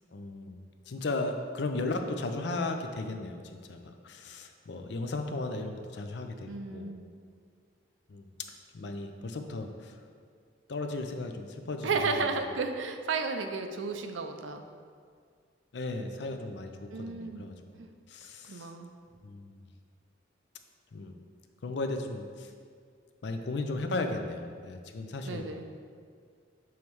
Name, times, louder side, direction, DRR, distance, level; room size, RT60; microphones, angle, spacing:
voice 1, 0.1-0.6 0.9-7.0 8.1-8.3 8.7-10.0 10.7-12.5 15.7-17.8 18.1-18.7 19.2-19.6 20.9-21.2 21.6-22.5 23.2-25.5, left 2 dB, 65° left, 5 dB, 0.5 m, -36 dB
voice 2, 6.5-7.1 11.8-14.6 16.9-17.4 17.8-17.9 18.5-18.9 25.3-25.6, right 4 dB, 85° right, 6 dB, 0.5 m, -33 dB
7.0 x 3.1 x 4.6 m, 2.1 s
head